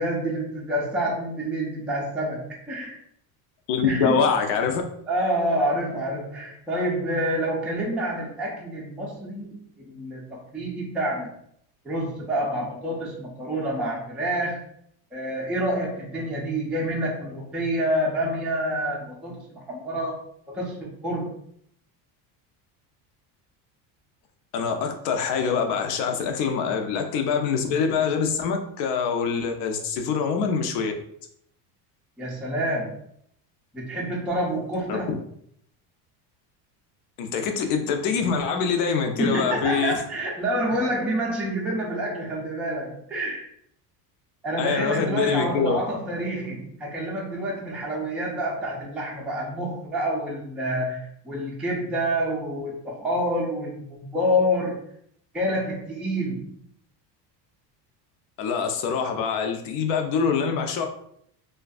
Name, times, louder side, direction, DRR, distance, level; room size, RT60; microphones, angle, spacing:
voice 1, 0.0-3.0 3.8-4.2 5.1-11.3 11.8-14.6 15.1-20.2 20.5-21.3 32.2-33.0 33.7-35.1 39.2-43.4 44.4-54.8 55.3-56.6, equal, 5° right, -4 dB, 0.3 m, -28 dB
voice 2, 3.7-4.8 24.5-30.9 34.9-35.0 37.2-39.9 44.6-45.8 58.4-60.8, left 6 dB, 80° left, 5 dB, 0.6 m, -24 dB
2.5 x 2.2 x 2.3 m, 0.68 s
cardioid pair, 125°, 44 cm